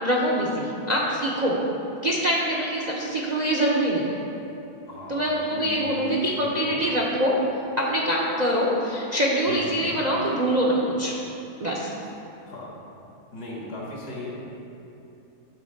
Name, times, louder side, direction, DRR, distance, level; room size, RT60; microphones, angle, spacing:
voice 1, 0.0-1.6 2.0-4.2 5.1-7.4 7.8-11.2 11.6-11.9, equal, 35° right, -3 dB, 0.7 m, -24 dB
voice 2, 4.9-5.2 5.5-6.8 9.5-9.9 12.5-12.7 13.3-14.5, left 1 dB, 70° left, -5 dB, 2.4 m, -37 dB
11.0 x 3.7 x 6.4 m, 2.9 s
omnidirectional pair, 1.7 m